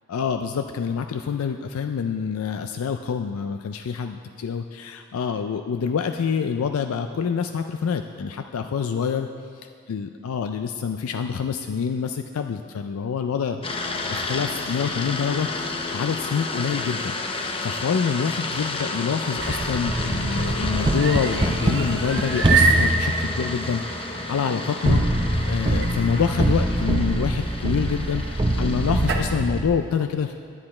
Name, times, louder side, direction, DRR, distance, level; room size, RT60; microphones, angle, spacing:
voice 1, 0.1-9.3 9.9-15.5 15.9-17.1 17.6-30.4, left 6 dB, 80° left, 7 dB, 0.4 m, -26 dB
sound 1, 13.6-29.6, left 3 dB, 25° left, 0.6 m, -31 dB
sound 2, 19.2-29.3, right 5 dB, 55° right, 0.8 m, -30 dB
sound 3, 19.4-24.0 24.8-29.7, right 1 dB, 20° right, 0.6 m, -24 dB
10.5 x 9.7 x 4.3 m, 2.1 s
head